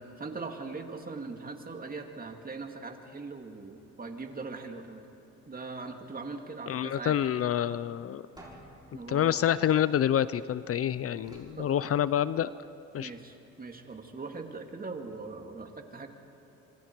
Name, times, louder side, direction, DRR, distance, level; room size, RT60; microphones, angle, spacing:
voice 1, 0.0-5.0 5.5-7.2 8.9-9.4 11.6-11.9 13.0-16.1, right 3 dB, 30° right, 4 dB, 2.3 m, -41 dB
voice 2, 6.7-8.2 9.1-12.5 12.9-13.1, left 10 dB, 50° left, 16 dB, 0.5 m, -27 dB
sound 1, 8.4-10.6 11.2-12.6, right 1 dB, 15° right, 6.5 m, -54 dB
27.0 x 25.0 x 4.6 m, 2.9 s
cardioid pair, 90°, 30 cm